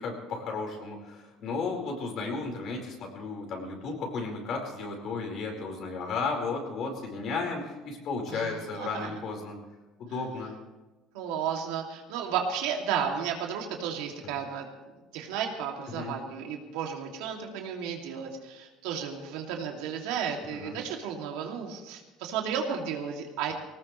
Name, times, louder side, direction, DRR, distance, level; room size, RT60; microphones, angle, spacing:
voice 1, 0.0-9.6 10.0-10.5 15.9-16.1 20.5-20.8, left 4 dB, 50° left, 1 dB, 4.8 m, -34 dB
voice 2, 8.3-9.1 11.1-14.7 15.1-23.5, right 7 dB, 85° right, 1 dB, 2.7 m, -33 dB
20.5 x 18.5 x 3.3 m, 1.1 s
cardioid pair, 145°, 0 cm